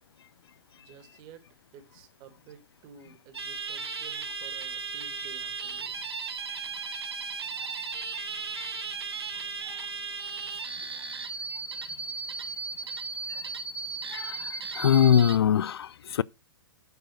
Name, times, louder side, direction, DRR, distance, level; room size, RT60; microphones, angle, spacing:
voice 1, 0.8-1.5 1.7-6.0, right 7 dB, 35° right, 2.5 m, -52 dB
sound 1, 3.3-15.4, right 5 dB, 75° right, 1.4 m, -36 dB
voice 2, 14.1-16.2, left 9 dB, 70° left, 0.4 m, -23 dB
9.3 x 4.9 x 6.4 m
figure-of-eight pair, 115°, 13 cm